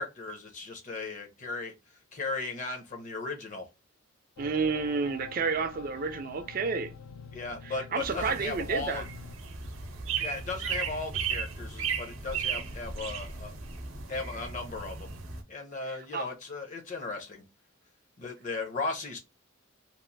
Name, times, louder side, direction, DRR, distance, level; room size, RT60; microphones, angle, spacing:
voice 1, 0.0-1.7 2.1-3.6 7.3-9.0 10.2-13.5 14.1-15.1 15.5-17.4 18.2-19.2, left 3 dB, 35° left, 0.7 m, -36 dB
sound 1, 4.4-9.4, left 5 dB, 80° left, 0.4 m, -47 dB
voice 2, 4.4-6.9 7.6-9.0 15.9-16.3, right 5 dB, 45° right, 0.4 m, -31 dB
sound 2, 8.0-15.4, right 6 dB, 80° right, 0.6 m, -36 dB
3.0 x 2.5 x 2.5 m
head